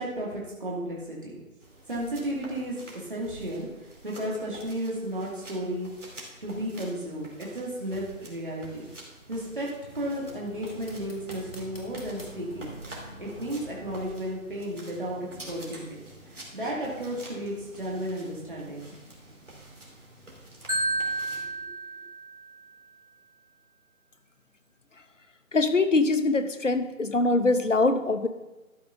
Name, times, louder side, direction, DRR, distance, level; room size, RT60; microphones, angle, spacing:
voice 1, 0.0-1.4 1.9-2.8 3.1-3.7 4.0-5.9 6.4-8.9 9.3-12.7 13.2-15.2 15.5-16.0 16.5-18.8 20.7-20.8, right 1 dB, 35° right, -4 dB, 2.2 m, -33 dB
sound 1, 1.6-21.5, right 1 dB, 60° right, 3.1 m, -48 dB
sound 2, 10.1-14.0, equal, 40° left, 1.8 m, -45 dB
Marimba xylophone, 20.7-22.8, right 1 dB, 85° right, 3.1 m, -31 dB
voice 2, 25.5-28.3, left 3 dB, 60° left, 10 dB, 0.9 m, -23 dB
12.5 x 5.3 x 5.5 m, 1.1 s
figure-of-eight pair, 175°, 42 cm